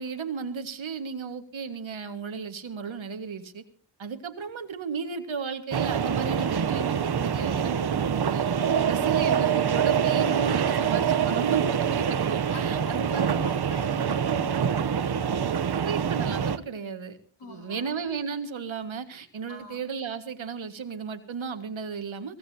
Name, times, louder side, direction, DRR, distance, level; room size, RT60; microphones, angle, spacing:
voice 1, 0.0-3.6 4.0-8.5 8.8-13.4 15.8-17.2 17.5-22.4, right 6 dB, 65° right, 8 dB, 1.8 m, -34 dB
sound 1, 5.7-16.6, right 8 dB, 50° right, 0.9 m, -25 dB
voice 2, 9.0-9.3 12.5-14.9 15.2-15.8 17.4-18.0 19.5-19.8, left 3 dB, 55° left, 3 dB, 4.7 m, -45 dB
24.5 x 17.0 x 2.8 m, 0.42 s
wide cardioid pair, 115°, 50 cm